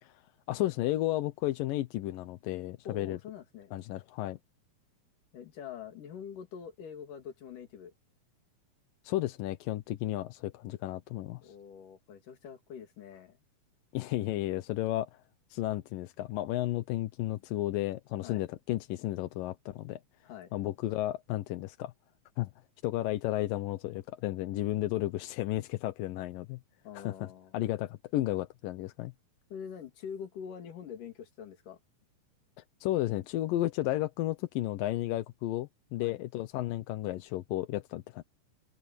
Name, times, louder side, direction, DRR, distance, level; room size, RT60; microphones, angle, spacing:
voice 1, 0.5-3.2 3.7-4.4 9.0-11.5 13.9-15.1 15.5-20.0 20.5-21.9 22.4-22.5 22.8-26.6 27.0-27.3 27.5-29.1 32.8-38.2, left 15 dB, 90° left, 2.6 m, -33 dB
voice 2, 2.9-3.7 5.3-7.9 11.4-13.4 18.2-18.4 20.2-20.5 26.8-27.6 29.5-31.8 36.0-36.2, left 7 dB, 70° left, 4.0 m, -45 dB
omnidirectional pair, 3.9 m